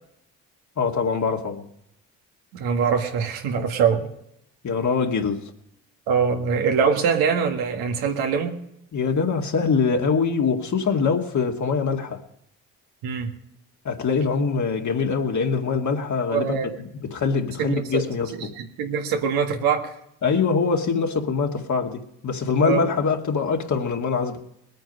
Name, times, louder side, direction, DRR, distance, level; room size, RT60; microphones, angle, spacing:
voice 1, 0.8-1.6 4.6-5.4 8.9-12.2 13.8-18.5 20.2-24.4, left 5 dB, 50° left, 3 dB, 2.3 m, -23 dB
voice 2, 2.5-4.1 6.1-8.6 13.0-13.3 16.3-16.7 17.6-18.1 18.3-19.9 22.6-22.8, right 6 dB, 85° right, 3 dB, 1.8 m, -23 dB
20.5 x 9.1 x 5.4 m, 0.77 s
supercardioid pair, 55°, 36 cm